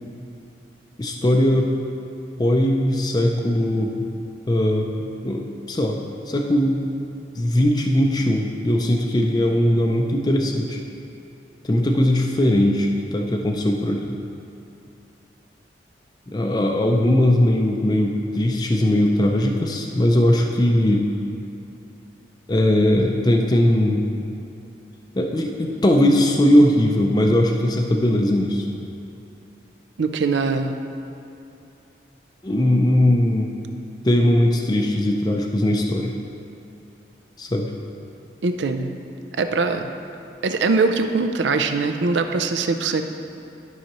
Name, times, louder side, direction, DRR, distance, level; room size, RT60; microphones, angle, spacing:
voice 1, 1.0-1.7 2.4-4.1 4.5-4.9 5.2-6.0 6.3-6.8 7.3-10.8 11.6-14.2 16.3-21.1 22.5-24.1 25.2-28.7 32.4-33.5 34.0-36.1 37.4-37.7, left 1 dB, 20° left, 1 dB, 0.4 m, -19 dB
voice 2, 30.0-30.7 38.4-38.9 39.4-39.9 40.4-43.0, right 4 dB, 85° right, 7 dB, 0.5 m, -22 dB
13.0 x 5.6 x 3.0 m, 2.8 s
head